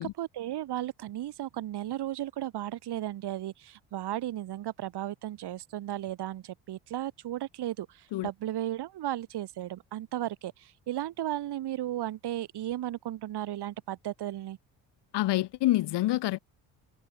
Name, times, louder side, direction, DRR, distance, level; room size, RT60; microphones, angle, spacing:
voice 1, 0.0-14.6, right 13 dB, 60° right, 7.4 m, -35 dB
voice 2, 15.1-16.4, left 16 dB, 65° left, 7.4 m, -27 dB
hypercardioid pair, 55°, 44 cm